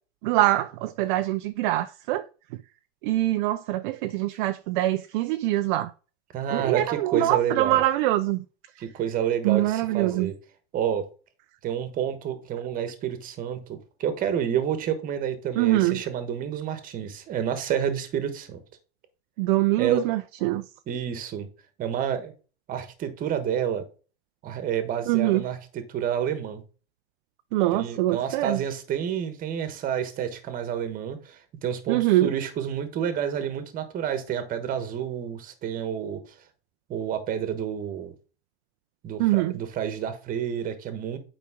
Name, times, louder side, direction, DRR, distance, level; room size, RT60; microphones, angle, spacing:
voice 1, 0.2-2.3 3.0-5.9 6.5-8.4 9.4-10.3 15.6-16.0 19.4-20.6 25.1-25.4 27.5-28.6 31.9-32.3 39.2-39.5, right 16 dB, 50° right, 0.5 m, -24 dB
voice 2, 6.3-7.8 8.8-10.3 10.7-11.1 11.6-18.6 19.8-20.0 20.9-21.5 21.8-22.3 22.7-23.8 24.4-26.6 27.7-36.2 36.9-38.1 39.0-41.2, right 9 dB, 25° right, 1.3 m, -29 dB
8.6 x 5.1 x 3.7 m
supercardioid pair, 155°, 32 cm